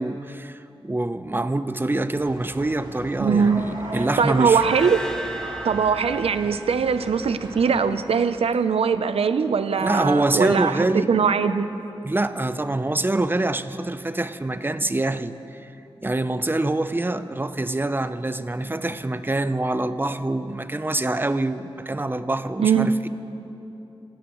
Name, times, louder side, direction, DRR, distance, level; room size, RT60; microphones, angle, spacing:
voice 1, 0.0-4.6 9.8-11.1 12.0-15.7 16.0-23.1, right 2 dB, 20° right, 12 dB, 0.6 m, -25 dB
sound 1, 2.2-7.8, right 1 dB, 55° right, 3.7 m, -37 dB
voice 2, 3.2-3.6 4.2-5.1 5.6-11.8 22.6-22.9, right 6 dB, 80° right, 11 dB, 0.6 m, -21 dB
sound 2, 4.3-7.5, right 2 dB, 5° left, 1.1 m, -37 dB
26.0 x 16.5 x 3.1 m, 3.0 s
cardioid pair, 55°, 10 cm